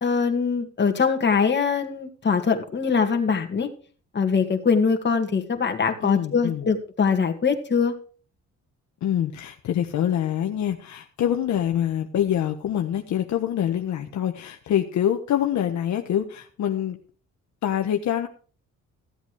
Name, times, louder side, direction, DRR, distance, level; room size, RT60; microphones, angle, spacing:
voice 1, 0.0-3.7 4.1-7.9, left 5 dB, 35° left, 5 dB, 2.2 m, -22 dB
voice 2, 6.0-6.7 9.0-17.0 17.6-18.3, left 10 dB, 70° left, 4 dB, 1.2 m, -25 dB
15.0 x 8.1 x 4.9 m, 0.41 s
cardioid pair, 90°, 30 cm